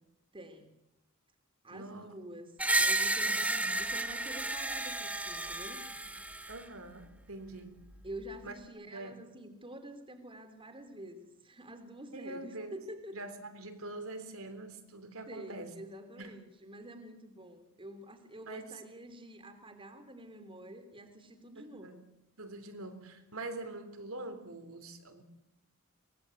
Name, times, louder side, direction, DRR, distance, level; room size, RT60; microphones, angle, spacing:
voice 1, 0.3-0.7 1.6-2.5 2.8-6.1 8.0-13.2 15.3-22.1, right 1 dB, 25° right, 8 dB, 3.2 m, -48 dB
voice 2, 1.7-2.4 3.2-3.8 6.5-7.9 8.4-8.5 8.9-9.3 12.1-12.7 13.1-15.8 16.2-16.4 18.5-18.8 21.6-22.0 22.4-25.2, right 2 dB, 80° right, 8 dB, 3.8 m, -44 dB
Screech, 2.6-6.6, right 2 dB, 5° right, 1.2 m, -32 dB
24.5 x 21.0 x 8.4 m, 0.86 s
head